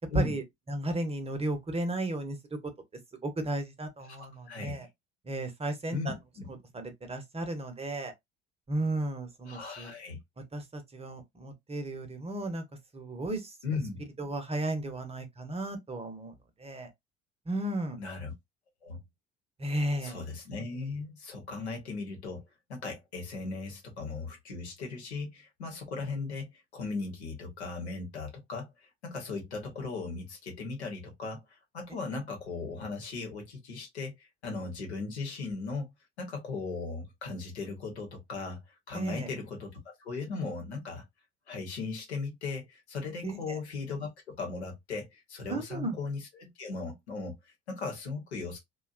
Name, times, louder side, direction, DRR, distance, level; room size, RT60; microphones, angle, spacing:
voice 1, 0.7-2.4 3.2-4.9 5.3-6.2 6.7-8.1 8.7-9.9 10.5-12.6 12.9-13.5 14.2-16.3 16.6-16.9 17.5-18.0 19.6-20.2 38.9-39.3 43.2-43.6 45.5-46.0, right 2 dB, 20° right, 0.8 m, -34 dB
voice 2, 4.0-4.8 5.9-6.5 9.5-10.2 13.6-14.0 18.0-18.3 18.8-19.0 20.0-22.4 22.7-35.9 36.2-39.7 40.0-41.0 41.5-48.6, left 4 dB, 85° left, 1.0 m, -37 dB
2.7 x 2.3 x 2.4 m
hypercardioid pair, 60°, 32 cm